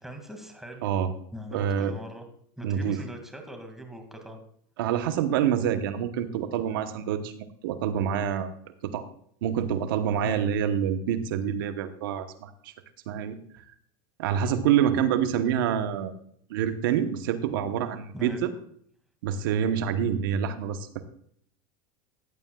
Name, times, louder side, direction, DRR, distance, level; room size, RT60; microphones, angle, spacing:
voice 1, 0.0-0.9 1.3-2.2 2.6-4.4 10.2-10.5 18.1-18.4, equal, 5° right, 4 dB, 2.1 m, -41 dB
voice 2, 0.8-1.1 1.5-2.0 2.6-3.0 4.8-7.3 7.6-8.5 8.8-9.0 9.4-12.7 13.1-13.4 14.2-16.1 16.5-18.5 19.2-21.0, right 9 dB, 75° right, 9 dB, 1.0 m, -26 dB
14.5 x 9.3 x 2.3 m, 0.64 s
supercardioid pair, 110°, 11 cm